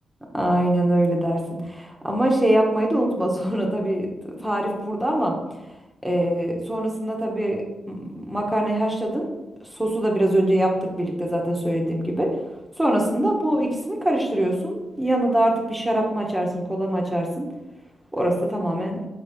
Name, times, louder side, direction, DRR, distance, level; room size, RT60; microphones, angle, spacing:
voice 1, 0.3-5.4 6.0-7.6 7.9-9.3 9.7-12.3 12.8-17.5 18.1-19.0, right 1 dB, 5° right, 0 dB, 0.9 m, -23 dB
5.2 x 4.0 x 5.2 m, 1.0 s
wide cardioid pair, 130°, 0 cm